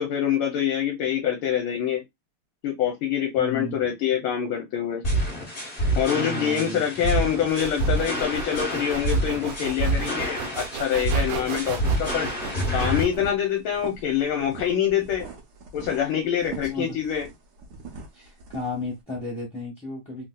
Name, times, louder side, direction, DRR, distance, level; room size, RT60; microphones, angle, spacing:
voice 1, 0.0-2.0 2.6-5.0 6.0-12.3 12.7-15.3 15.7-17.3, left 9 dB, 75° left, 1.5 m, -25 dB
voice 2, 3.4-3.8 6.1-7.1 16.6-17.0 18.1-20.3, left 1 dB, 5° left, 0.7 m, -34 dB
sound 1, 5.0-13.0, right 1 dB, 35° left, 0.9 m, -27 dB
sound 2, 7.5-13.2, right 6 dB, 90° right, 1.5 m, -35 dB
sound 3, 11.6-18.9, right 4 dB, 60° right, 1.2 m, -42 dB
3.7 x 2.7 x 2.2 m
omnidirectional pair, 2.4 m